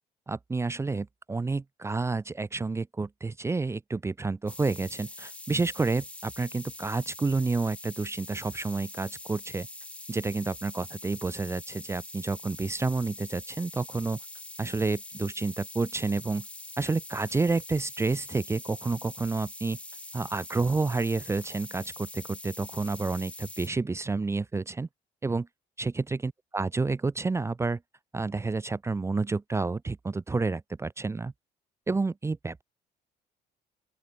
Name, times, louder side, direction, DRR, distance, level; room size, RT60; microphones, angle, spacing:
voice 1, 0.3-9.7 10.1-14.2 14.6-16.4 16.8-19.8 20.1-24.9 25.2-25.5 25.8-26.0 26.5-27.8 28.1-31.3 31.9-32.6, right 3 dB, 15° right, 0.6 m, -29 dB
sound 1, 4.5-23.7, left 1 dB, 5° left, 0.9 m, -44 dB
open air
cardioid pair, 110°, 17 cm